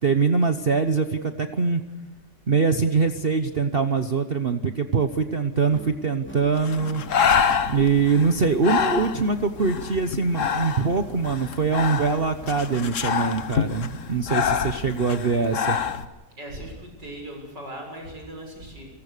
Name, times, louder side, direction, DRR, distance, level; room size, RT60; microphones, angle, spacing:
voice 1, 0.0-1.8 2.5-7.0 7.7-15.8, right 5 dB, 40° right, 8 dB, 1.1 m, -23 dB
sound 1, 5.5-8.3, equal, 5° left, 3.7 m, -43 dB
Breathing, 6.6-16.0, left 7 dB, 50° left, 1.4 m, -27 dB
voice 2, 16.4-18.9, right 1 dB, 85° right, 2 dB, 7.6 m, -38 dB
29.0 x 19.0 x 6.7 m, 1.1 s
omnidirectional pair, 1.8 m